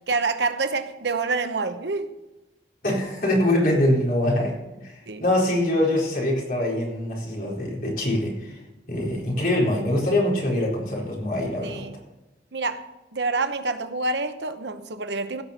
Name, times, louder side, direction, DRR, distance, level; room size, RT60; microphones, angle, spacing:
voice 1, 0.1-2.1 5.1-5.2 11.6-12.0 12.5-12.9 13.1-15.4, right 3 dB, 80° right, 9 dB, 0.9 m, -27 dB
voice 2, 2.8-4.6 4.8-8.6 8.9-11.8, left 1 dB, 50° left, -3 dB, 4.2 m, -24 dB
16.5 x 6.0 x 6.6 m, 1.0 s
head